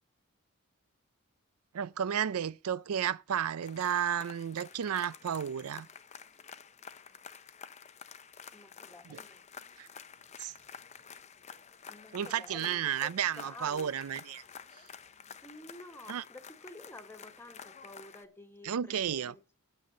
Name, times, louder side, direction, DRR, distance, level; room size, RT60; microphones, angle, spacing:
voice 1, 1.7-5.9 9.1-9.2 9.8-9.9 10.4-10.5 12.1-14.4 16.1-16.2 18.6-19.3, right 9 dB, 80° right, 0.4 m, -32 dB
sound 1, 3.6-18.2, left 7 dB, 30° left, 0.6 m, -50 dB
voice 2, 8.5-9.4 11.9-14.0 15.4-19.5, left 1 dB, 10° left, 1.3 m, -51 dB
9.0 x 8.0 x 6.7 m
head